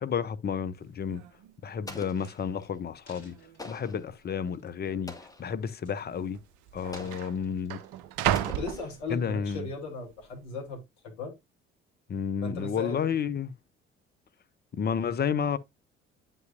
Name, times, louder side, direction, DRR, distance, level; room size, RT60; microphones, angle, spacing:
voice 1, 0.0-1.2 1.6-3.3 3.6-5.1 5.4-6.4 6.7-7.8 9.1-9.7 12.1-13.5 14.7-15.6, left 7 dB, 30° left, 0.7 m, -31 dB
sound 1, 0.8-0.9 1.1-1.5 2.2-2.3 3.1-3.6 3.9-4.0 4.9-5.0 6.0-6.1 6.3-9.6 10.1-10.5, right 11 dB, 55° right, 0.7 m, -34 dB
Explosion, 1.9-2.8 3.6-4.1 5.1-5.6 6.9-7.5 8.3-9.2, left 2 dB, 10° left, 1.9 m, -45 dB
sound 2, 2.8-4.9 5.3-5.5 5.8-6.4 6.7-8.4 9.0-9.1, left 2 dB, 80° left, 1.7 m, -60 dB
voice 2, 8.6-11.4 12.4-13.3, left 4 dB, 65° left, 1.5 m, -37 dB
9.3 x 5.5 x 2.5 m
figure-of-eight pair, 50°, 33 cm